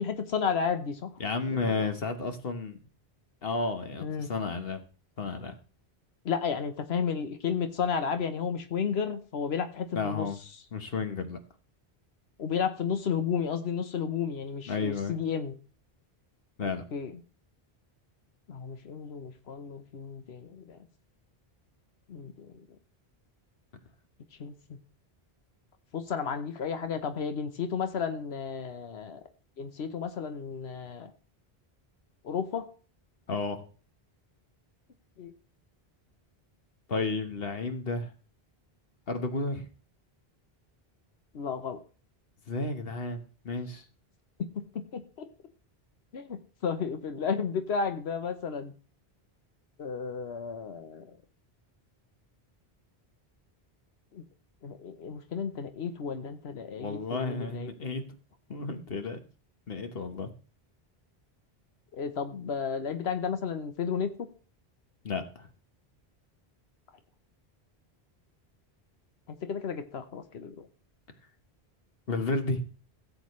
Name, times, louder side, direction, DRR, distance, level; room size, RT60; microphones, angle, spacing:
voice 1, 0.0-1.1 1.5-1.9 4.0-4.3 6.2-10.3 12.4-15.5 16.9-17.2 18.5-20.8 22.1-22.5 24.4-24.5 25.9-29.2 29.6-31.1 32.2-32.6 35.2-35.3 41.3-41.8 44.9-45.3 46.1-48.7 49.8-51.1 54.1-54.2 54.6-57.7 61.9-64.3 69.4-70.7, left 6 dB, 80° left, 8 dB, 1.2 m, -32 dB
voice 2, 1.2-2.8 3.4-4.8 5.2-5.5 9.9-10.4 10.7-11.4 14.7-15.1 16.6-16.8 33.3-33.6 36.9-38.1 39.1-39.6 42.5-43.8 56.8-58.1 58.5-59.2 59.7-60.3 65.0-65.5 72.1-72.6, left 3 dB, 65° left, 7 dB, 1.5 m, -32 dB
16.5 x 7.7 x 3.2 m, 0.37 s
omnidirectional pair, 1.0 m